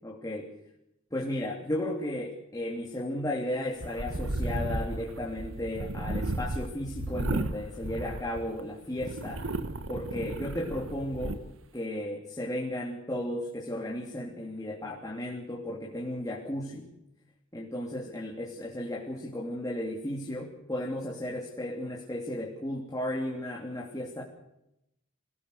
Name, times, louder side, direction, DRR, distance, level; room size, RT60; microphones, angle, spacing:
voice 1, 0.0-0.5 1.1-9.4 9.9-11.4 11.7-16.9 17.5-24.2, left 1 dB, 15° left, -3 dB, 3.2 m, -34 dB
sound 1, 3.8-8.6 9.0-11.4, right 2 dB, 75° right, 1.5 m, -34 dB
26.0 x 18.0 x 6.5 m, 0.85 s
head